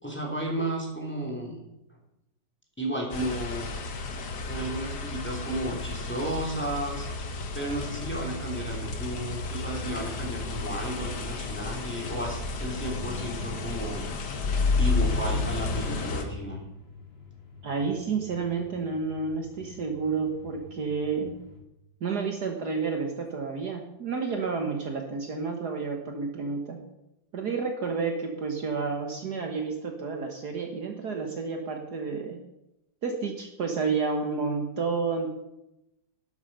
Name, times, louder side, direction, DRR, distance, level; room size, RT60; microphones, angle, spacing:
voice 1, 0.0-1.6 2.8-3.7 4.5-7.1 7.5-14.1 14.8-16.6, right 1 dB, 5° left, -1 dB, 3.2 m, -33 dB
sound 1, 3.1-16.2, left 3 dB, 60° left, 1.9 m, -31 dB
sound 2, 10.4-21.6, left 5 dB, 30° left, 2.2 m, -50 dB
voice 2, 17.6-21.4 22.0-26.8 27.3-32.4 33.0-35.3, right 4 dB, 55° right, 3 dB, 1.9 m, -30 dB
12.0 x 11.5 x 5.5 m, 0.88 s
omnidirectional pair, 2.1 m